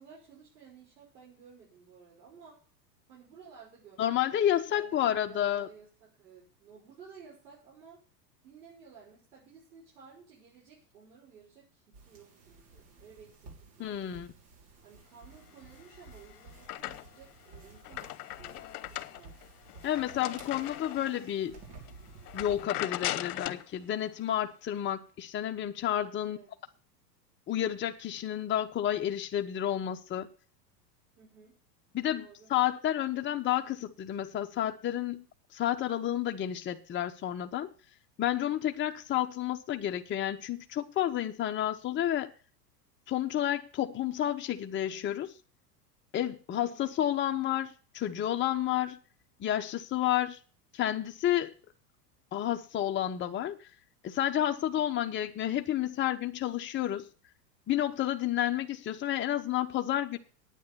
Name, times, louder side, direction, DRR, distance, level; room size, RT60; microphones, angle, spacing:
voice 1, 0.0-2.6 3.1-8.0 8.4-14.0 14.8-19.4 26.2-26.5 31.2-31.6 32.1-32.5 46.5-46.8, right 6 dB, 75° right, 6.0 m, -55 dB
voice 2, 4.0-5.7 13.8-14.3 19.8-21.6 22.3-26.4 27.5-30.3 31.9-35.2 35.5-37.7 38.2-42.3 43.1-45.3 46.1-49.0 49.4-50.4 50.7-51.5 52.3-53.7 54.0-57.1 57.7-60.2, left 11 dB, 25° left, 0.9 m, -30 dB
sound 1, 11.9-22.7, right 4 dB, 50° right, 5.5 m, -53 dB
sound 2, 15.8-17.3 17.7-21.3 21.7-21.9 22.3-23.7, left 15 dB, 65° left, 1.0 m, -39 dB
9.5 x 9.1 x 6.8 m
hypercardioid pair, 105°, 49 cm